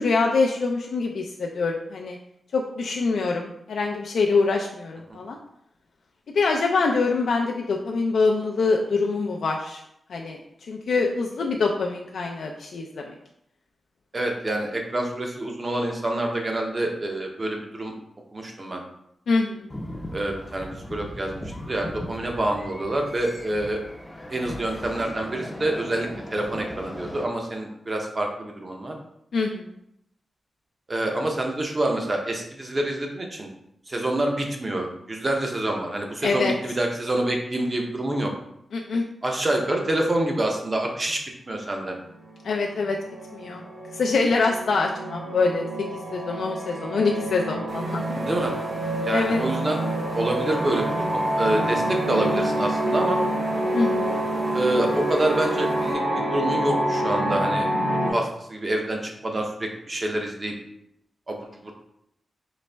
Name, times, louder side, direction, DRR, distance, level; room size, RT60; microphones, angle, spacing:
voice 1, 0.0-2.2 2.5-5.4 6.3-9.8 10.1-10.4 10.7-13.1 19.3-19.7 29.3-29.7 36.2-36.5 38.7-39.0 42.4-43.0 43.3-43.6 43.9-45.7 46.1-48.2 49.1-49.4 53.7-54.2, left 4 dB, 80° left, 0 dB, 0.4 m, -24 dB
voice 2, 14.1-17.9 18.3-18.8 20.1-21.3 21.7-23.8 24.3-28.9 30.9-33.5 33.9-38.3 39.2-41.2 41.5-41.9 48.1-48.6 49.0-49.8 50.1-53.2 54.5-57.7 58.0-60.5 61.3-61.7, right 1 dB, 25° right, 2 dB, 0.6 m, -27 dB
sound 1, 19.7-27.2, left 1 dB, 15° left, 0.5 m, -38 dB
sound 2, 42.3-42.4 42.7-58.1, right 1 dB, 50° right, 1.2 m, -27 dB
sound 3, 47.7-55.9, right 1 dB, 70° right, 1.1 m, -40 dB
4.0 x 3.1 x 3.3 m, 0.77 s
wide cardioid pair, 175°, 0 cm